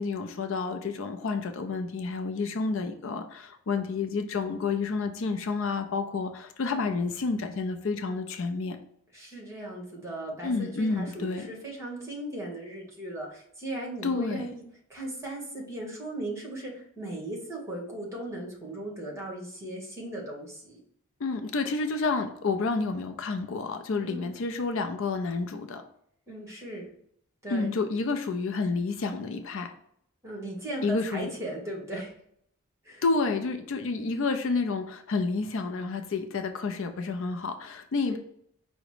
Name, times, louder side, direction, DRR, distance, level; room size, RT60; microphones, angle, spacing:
voice 1, 0.0-8.8 10.4-11.5 14.0-14.5 21.2-25.8 27.5-29.7 30.8-31.3 33.0-38.2, left 4 dB, 60° left, 7 dB, 0.4 m, -30 dB
voice 2, 9.1-14.6 14.9-20.8 24.0-24.3 26.3-26.9 27.4-27.7 30.2-32.1 32.8-33.0 38.1-38.2, right 1 dB, 15° right, -2 dB, 1.2 m, -37 dB
4.9 x 2.1 x 4.7 m, 0.68 s
head